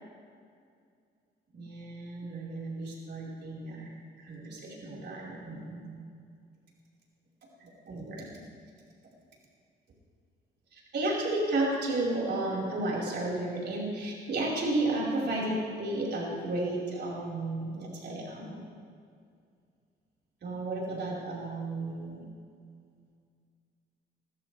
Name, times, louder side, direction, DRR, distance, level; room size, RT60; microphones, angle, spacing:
voice 1, 1.5-3.9 4.2-5.9 7.6-8.3 10.9-18.7 20.4-22.2, right 2 dB, 60° right, -5 dB, 5.1 m, -33 dB
23.5 x 15.0 x 3.5 m, 2.2 s
cardioid pair, 90°, 20 cm